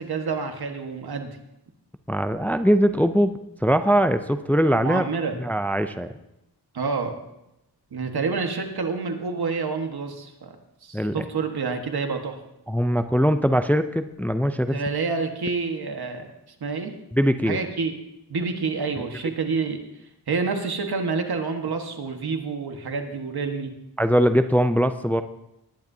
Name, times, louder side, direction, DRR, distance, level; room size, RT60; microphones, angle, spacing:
voice 1, 0.0-1.4 4.8-5.4 6.7-7.1 7.9-10.6 10.8-12.4 14.7-16.3 16.6-17.0 17.5-17.9 18.3-19.8 20.3-23.8, right 4 dB, 70° right, 5 dB, 1.5 m, -28 dB
voice 2, 2.1-5.0 5.4-6.1 10.9-11.2 12.7-14.8 17.1-17.6 24.0-25.2, equal, 5° left, 9 dB, 0.5 m, -21 dB
19.0 x 10.5 x 2.8 m, 0.86 s
wide cardioid pair, 95°, 39 cm